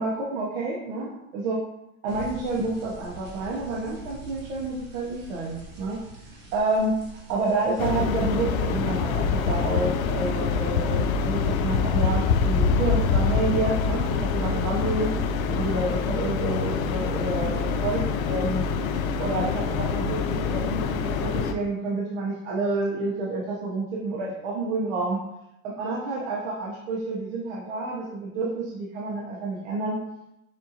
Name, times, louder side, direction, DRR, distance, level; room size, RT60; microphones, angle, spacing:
voice 1, 0.0-1.6 2.0-6.0 6.5-6.9 7.3-15.1 15.5-18.6 19.2-25.2 25.6-30.0, right 3 dB, 60° right, -4 dB, 1.0 m, -29 dB
sound 1, 2.1-7.9, right 2 dB, 25° right, 0.7 m, -44 dB
sound 2, 7.8-21.5, left 5 dB, 80° left, 0.6 m, -25 dB
6.7 x 2.6 x 2.8 m, 0.87 s
supercardioid pair, 155°, 41 cm